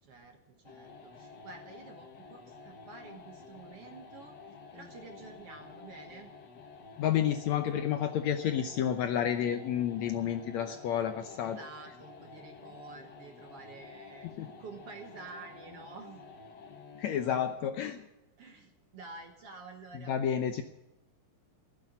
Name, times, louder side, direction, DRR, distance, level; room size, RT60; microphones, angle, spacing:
voice 1, 0.0-6.3 11.4-14.3 14.6-16.2 18.4-20.1, right 4 dB, 55° right, 4 dB, 1.9 m, -49 dB
sound 1, 0.6-17.7, left 4 dB, 90° left, 0.9 m, -51 dB
voice 2, 7.0-11.6 14.4-14.5 17.0-18.0 20.1-20.6, left 9 dB, 70° left, 7 dB, 1.8 m, -30 dB
16.0 x 9.0 x 9.9 m, 0.91 s
omnidirectional pair, 3.9 m